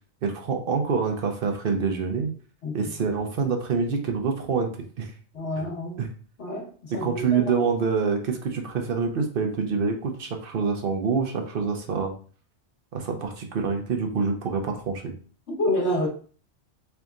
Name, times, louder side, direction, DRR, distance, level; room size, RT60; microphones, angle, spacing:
voice 1, 0.2-2.3 2.7-4.7 5.0-5.1 5.6-5.7 6.0-6.1 6.9-12.1 12.9-15.1, right 5 dB, 60° right, 4 dB, 0.8 m, -26 dB
voice 2, 5.3-6.0 6.4-7.7 15.5-16.1, left 1 dB, 75° left, -1 dB, 1.4 m, -28 dB
4.0 x 3.4 x 2.4 m, 0.41 s
omnidirectional pair, 1.2 m